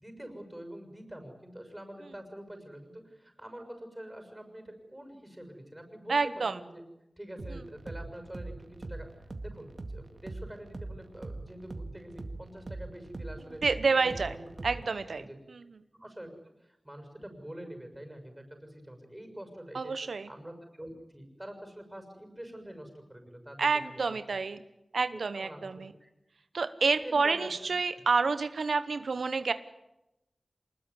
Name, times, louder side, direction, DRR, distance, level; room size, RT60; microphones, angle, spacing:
voice 1, 0.0-6.8 7.2-9.1 9.4-13.6 13.9-14.4 15.2-15.4 15.9-16.3 16.6-19.9 20.3-24.0 25.1-25.6 26.0-26.1 27.0-27.5, right 1 dB, 10° right, 6 dB, 6.4 m, -45 dB
voice 2, 6.1-6.6 13.6-14.3 14.6-15.2 19.7-20.3 23.6-24.6 24.9-25.9 26.5-29.5, right 4 dB, 90° right, 12 dB, 0.9 m, -28 dB
sound 1, 7.4-15.1, right 2 dB, 45° right, 2.1 m, -42 dB
25.5 x 20.5 x 9.8 m, 0.91 s
wide cardioid pair, 85°, 0 cm